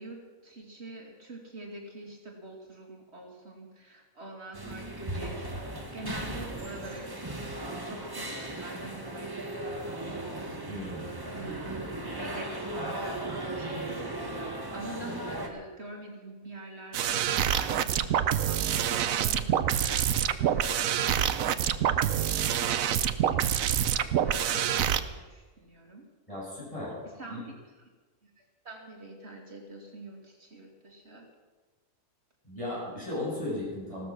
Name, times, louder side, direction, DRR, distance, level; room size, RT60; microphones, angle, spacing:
voice 1, 0.0-7.6 7.8-10.1 11.2-14.5 14.7-26.0 27.0-27.9 28.2-31.3, right 1 dB, 50° right, 1 dB, 2.9 m, -46 dB
sound 1, 4.5-15.5, right 1 dB, 15° right, 1.7 m, -37 dB
voice 2, 10.7-11.1 26.3-27.0 27.3-27.4 32.5-34.1, left 1 dB, 25° left, -5 dB, 7.0 m, -35 dB
sound 2, 16.9-25.0, right 9 dB, 80° right, 1.1 m, -26 dB
15.5 x 13.5 x 6.0 m, 1.3 s
omnidirectional pair, 1.4 m